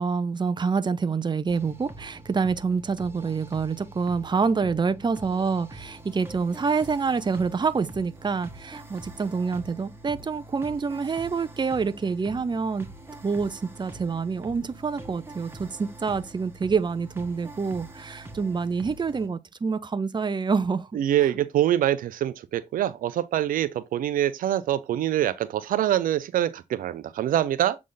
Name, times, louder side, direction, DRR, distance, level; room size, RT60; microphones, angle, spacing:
voice 1, 0.0-12.9 13.2-20.9 21.2-21.3, right 5 dB, 35° right, 0.7 m, -27 dB
sound 1, 1.5-19.3, right 2 dB, 15° right, 1.6 m, -44 dB
voice 2, 20.9-27.8, right 12 dB, 85° right, 0.6 m, -25 dB
7.6 x 3.6 x 4.0 m
cardioid pair, 70°, 14 cm